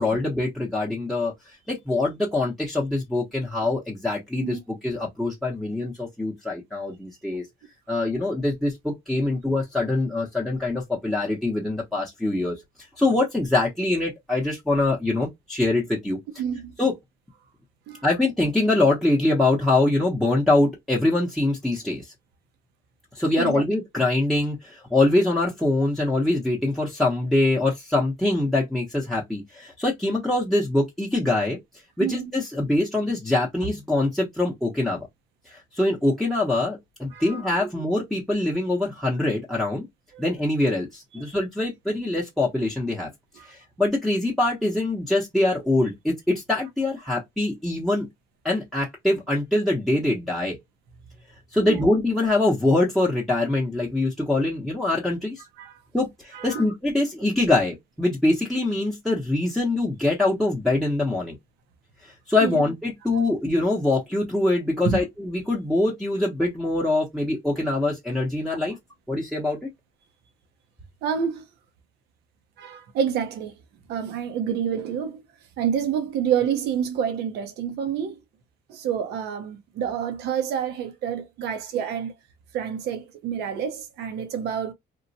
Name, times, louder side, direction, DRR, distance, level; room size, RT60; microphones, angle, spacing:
voice 1, 0.0-1.3 1.7-7.5 7.9-12.5 13.0-16.2 16.8-16.9 18.0-22.1 23.2-31.6 32.0-35.0 35.5-39.9 40.2-43.1 43.5-48.1 48.4-50.6 51.5-55.4 55.9-61.4 62.0-68.8 69.1-69.7, left 2 dB, ahead, 0.7 m, -24 dB
voice 2, 16.4-16.7 17.9-18.0 23.4-23.6 32.0-32.3 37.1-37.3 37.6-37.7 40.1-40.2 41.1-41.3 43.4-43.5 51.6-51.9 55.6-55.7 56.3-56.7 62.4-62.6 64.8-65.0 71.0-71.5 72.6-73.6 73.9-75.2 75.6-78.2 78.7-82.1 82.5-84.7, right 8 dB, 75° right, 0.7 m, -28 dB
3.0 x 2.1 x 2.6 m
cardioid pair, 110°, 17 cm